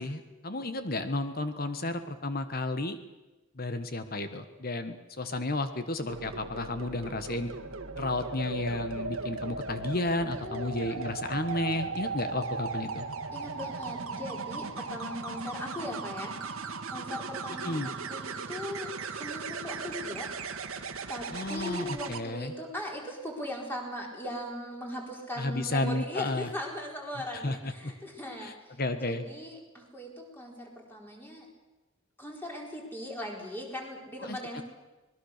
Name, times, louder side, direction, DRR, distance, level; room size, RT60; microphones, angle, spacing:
voice 1, 0.0-3.0 3.6-7.5 8.0-13.1 17.6-17.9 21.3-22.5 25.4-26.5 27.4-27.9 28.4-28.5 28.8-29.2 34.2-34.6, left 2 dB, 45° left, 9 dB, 1.3 m, -32 dB
sound 1, 6.1-22.2 24.1-24.4, right 4 dB, 80° right, 1.8 m, -37 dB
voice 2, 10.3-11.0 13.3-20.3 20.6-20.8 21.1-31.5 32.2-34.6, left 1 dB, 10° left, 0 dB, 4.2 m, -39 dB
25.5 x 20.5 x 6.6 m, 1.1 s
head